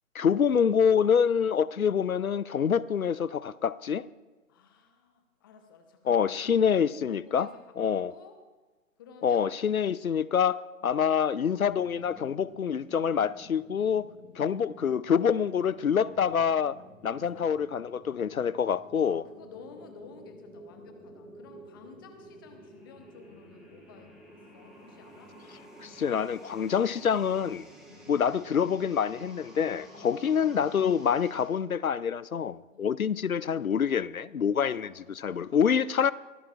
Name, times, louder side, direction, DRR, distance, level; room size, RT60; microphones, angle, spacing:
voice 1, 0.1-4.1 6.1-7.5 7.8-8.1 9.2-14.0 14.4-16.7 17.0-19.2 25.8-27.7 28.1-34.9 35.2-36.1, left 7 dB, 80° left, 0.6 m, -26 dB
voice 2, 4.5-8.4 9.0-9.5 10.8-11.0 17.0-17.6 19.0-25.4 27.9-28.1 29.9-30.4 32.7-33.0 34.7-34.9, left 6 dB, 15° left, 0.8 m, -53 dB
sound 1, 11.5-31.4, equal, ahead, 1.9 m, -52 dB
24.0 x 15.5 x 2.5 m
figure-of-eight pair, 135°, 42 cm